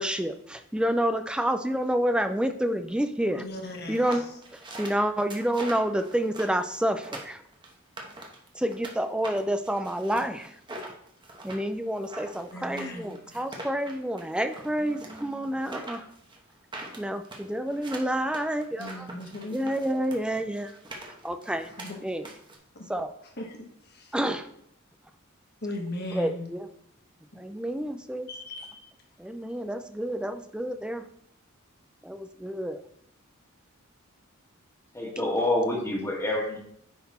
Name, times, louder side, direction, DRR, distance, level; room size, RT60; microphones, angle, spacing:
voice 1, 0.0-3.4 3.9-4.3 4.5-7.4 8.5-10.5 11.4-16.1 17.0-19.1 19.5-20.8 21.2-21.7 22.0-22.3 22.9-23.1 24.1-24.5 26.1-26.7 27.4-28.3 29.2-31.1 32.0-32.8, right 1 dB, 5° right, 7 dB, 0.4 m, -29 dB
voice 2, 3.4-4.1 12.5-13.4 18.8-19.6 21.8-22.0 22.7-22.9 23.4-23.7 23.9-24.1 25.6-26.5 28.3-28.8, left 1 dB, 50° left, 2 dB, 1.4 m, -37 dB
sound 1, 3.9-8.9 9.2-22.6, right 2 dB, 20° right, 1.1 m, -43 dB
voice 3, 34.9-36.6, left 1 dB, 15° left, -2 dB, 1.7 m, -27 dB
9.5 x 4.0 x 4.2 m, 0.72 s
head